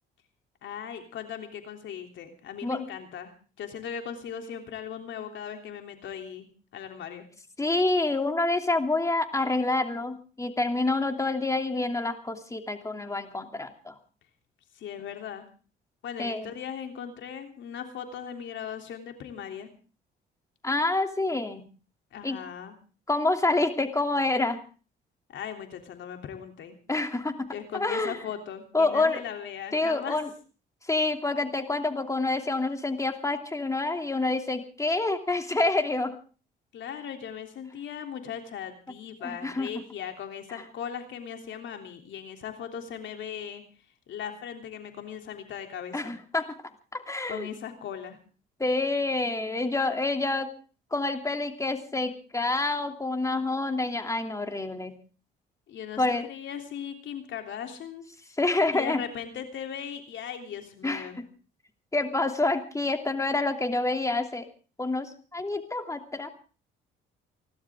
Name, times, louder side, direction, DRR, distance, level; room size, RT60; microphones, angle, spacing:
voice 1, 0.6-3.3 3.6-7.3 14.7-15.4 16.0-19.7 22.1-22.7 25.3-26.8 27.5-30.2 36.7-43.6 44.1-46.1 47.3-48.2 55.7-58.1 58.7-61.2, left 8 dB, 70° left, 5 dB, 3.3 m, -38 dB
voice 2, 7.6-13.9 16.2-16.5 20.6-21.6 22.2-22.4 23.1-24.6 26.9-27.5 27.7-28.2 28.7-29.2 29.7-30.3 30.9-36.2 39.2-39.7 45.9-46.5 46.9-47.5 48.6-50.5 50.9-54.9 56.0-56.2 58.4-59.0 60.8-61.3 61.9-64.5 64.8-66.3, left 2 dB, 15° left, 5 dB, 2.9 m, -27 dB
30.0 x 12.0 x 3.7 m, 0.37 s
cardioid pair, 85°, 20 cm